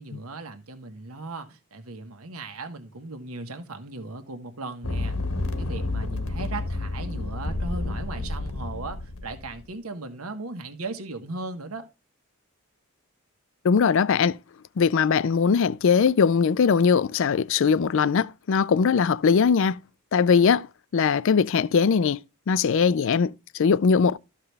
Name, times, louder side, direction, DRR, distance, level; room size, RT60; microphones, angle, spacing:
voice 1, 0.0-5.2 5.6-11.9, right 3 dB, 85° right, 1.4 m, -37 dB
sound 1, 4.8-9.5, left 2 dB, 80° left, 1.5 m, -30 dB
voice 2, 13.6-14.4 14.8-19.8 20.1-20.7 20.9-22.2 22.5-24.2, left 6 dB, 60° left, 0.4 m, -20 dB
13.5 x 5.8 x 3.4 m
head